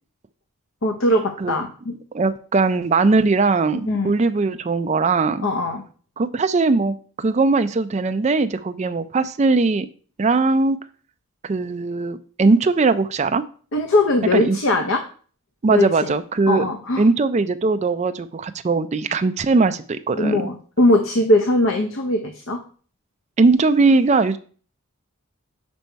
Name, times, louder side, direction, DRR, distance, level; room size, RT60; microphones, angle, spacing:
voice 1, 0.8-2.0 3.9-4.1 5.4-5.8 13.7-15.0 15.7-16.1 16.5-17.0 20.1-22.6, left 2 dB, 65° left, 4 dB, 0.7 m, -20 dB
voice 2, 2.1-5.5 6.2-9.9 10.2-10.8 11.4-13.4 14.3-14.6 15.6-16.6 17.0-20.4 23.4-24.4, right 3 dB, 30° right, 9 dB, 0.4 m, -19 dB
5.3 x 5.3 x 4.5 m, 0.43 s
head